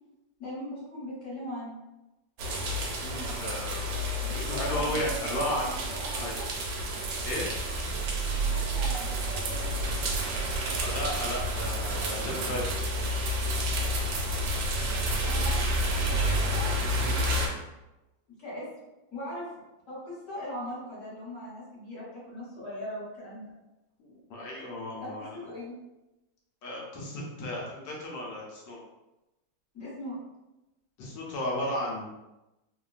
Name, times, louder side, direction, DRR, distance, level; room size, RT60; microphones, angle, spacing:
voice 1, 0.4-1.7 4.2-6.5 8.4-9.4 15.2-17.2 18.4-18.7 19.1-19.5 19.9-23.6 25.0-25.8 29.7-30.2, left 1 dB, 45° left, -9 dB, 1.5 m, -40 dB
sound 1, 2.4-17.5, right 1 dB, 85° right, 1.3 m, -30 dB
voice 2, 3.0-5.8 6.1-6.3 7.2-7.5 10.8-12.6 24.0-25.3 26.6-28.8 31.0-32.1, left 1 dB, 75° left, -3 dB, 1.3 m, -34 dB
3.2 x 2.1 x 2.3 m, 0.98 s
omnidirectional pair, 2.0 m